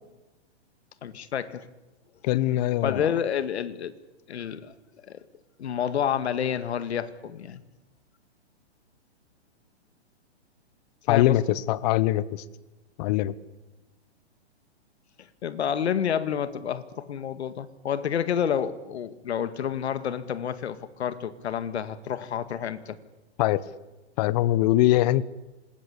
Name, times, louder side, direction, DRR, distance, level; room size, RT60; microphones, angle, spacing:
voice 1, 1.0-1.7 2.8-3.9 4.3-4.7 5.0-5.2 5.6-7.6 11.1-11.4 15.4-23.0, left 8 dB, 75° left, 13 dB, 2.1 m, -29 dB
voice 2, 2.2-3.1 11.1-12.4 13.0-13.3 23.4-23.6 24.2-25.2, left 15 dB, 40° left, 19 dB, 1.1 m, -22 dB
26.5 x 20.0 x 8.6 m, 1.1 s
hypercardioid pair, 145°, 34 cm